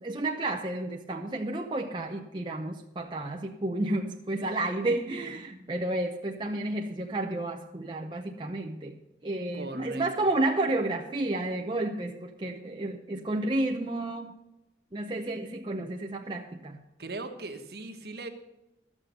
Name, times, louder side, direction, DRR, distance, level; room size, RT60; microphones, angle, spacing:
voice 1, 0.0-9.0 9.2-14.4 14.9-16.8, right 2 dB, 25° right, 1 dB, 0.7 m, -31 dB
voice 2, 9.5-10.3 17.0-18.3, right 2 dB, 60° right, 6 dB, 1.2 m, -39 dB
12.0 x 7.4 x 6.5 m, 0.92 s
head